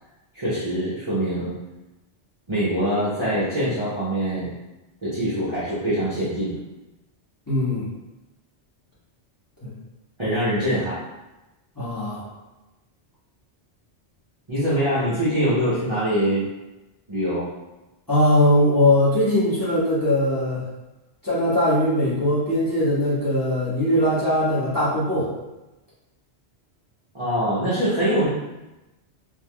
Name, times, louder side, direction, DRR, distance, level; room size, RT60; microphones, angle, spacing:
voice 1, 0.3-1.6 2.5-4.5 5.0-6.6 10.2-11.0 14.5-16.5 17.1-17.5 27.1-28.3, equal, 30° right, -11 dB, 0.7 m, -23 dB
voice 2, 7.5-7.9 9.6-9.7 11.8-12.3 18.1-20.6 21.2-25.3, left 1 dB, 20° left, -11 dB, 0.9 m, -20 dB
3.3 x 2.6 x 2.2 m, 1.0 s
omnidirectional pair, 1.2 m